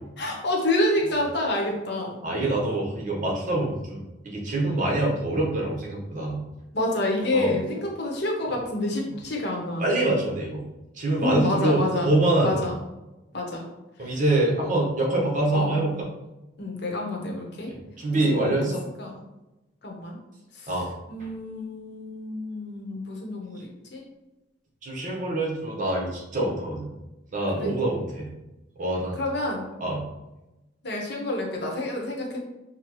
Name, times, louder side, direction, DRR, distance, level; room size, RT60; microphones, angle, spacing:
voice 1, 0.2-2.2 6.7-9.9 11.2-12.1 12.4-12.8 13.3-13.6 14.0-14.2 15.5-15.8 16.6-17.7 18.1-18.6 19.0-19.2 19.8-20.2 20.5-20.7 21.1-24.0 27.6-27.7 29.1-29.7 30.8-32.4, left 1 dB, 65° left, 0 dB, 1.0 m, -28 dB
voice 2, 2.2-6.4 7.3-7.6 9.8-10.6 10.9-12.6 14.0-16.1 17.7-18.8 20.7-20.9 24.8-26.9 27.3-28.3 28.8-29.2 29.8-30.0, right 2 dB, 45° right, -2 dB, 1.1 m, -25 dB
6.0 x 2.3 x 3.1 m, 1.0 s
head